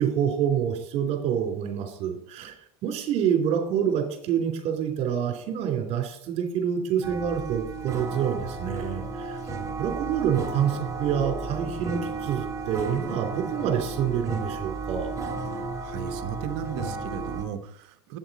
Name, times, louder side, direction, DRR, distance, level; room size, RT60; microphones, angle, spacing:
voice 1, 0.0-2.5 2.8-9.4 9.8-15.1, right 8 dB, 50° right, 3 dB, 3.0 m, -27 dB
sound 1, 7.0-17.5, right 3 dB, 25° right, 3.1 m, -33 dB
voice 2, 15.8-18.2, right 9 dB, 65° right, 8 dB, 1.1 m, -35 dB
8.5 x 7.8 x 4.2 m, 0.70 s
hypercardioid pair, 95°, 14 cm